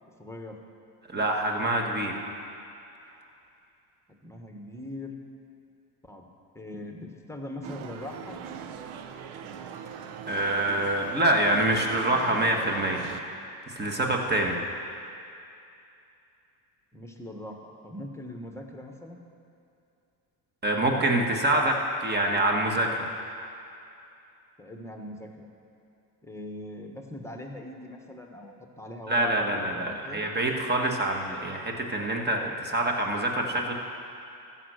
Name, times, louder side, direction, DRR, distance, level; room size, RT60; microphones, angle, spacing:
voice 1, 0.2-0.6 4.1-5.2 6.0-6.2 6.5-8.4 16.9-19.2 24.6-25.5 26.2-30.2, left 1 dB, 5° left, 3 dB, 1.3 m, -41 dB
voice 2, 1.1-2.1 10.3-13.0 13.7-14.6 20.6-23.1 29.1-33.7, right 1 dB, 20° right, 1 dB, 1.6 m, -26 dB
sound 1, 7.6-13.2, right 7 dB, 85° right, 0.8 m, -40 dB
15.0 x 5.8 x 6.4 m, 2.6 s
supercardioid pair, 85°, 47 cm